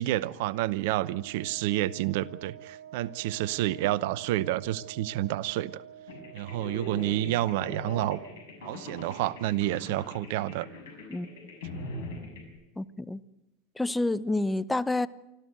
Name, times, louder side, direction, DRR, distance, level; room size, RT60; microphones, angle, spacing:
voice 1, 0.0-5.8 6.3-8.2 8.6-10.7, right 15 dB, 65° right, 0.7 m, -29 dB
Wind instrument woodwind instrument, 0.8-8.6, right 9 dB, 85° right, 2.5 m, -49 dB
sound 1, 6.1-12.5, left 2 dB, 75° left, 6.5 m, -41 dB
voice 2, 12.8-13.2 13.8-15.1, left 2 dB, 10° left, 0.8 m, -28 dB
25.0 x 14.5 x 7.9 m
hypercardioid pair, 85°, 0 cm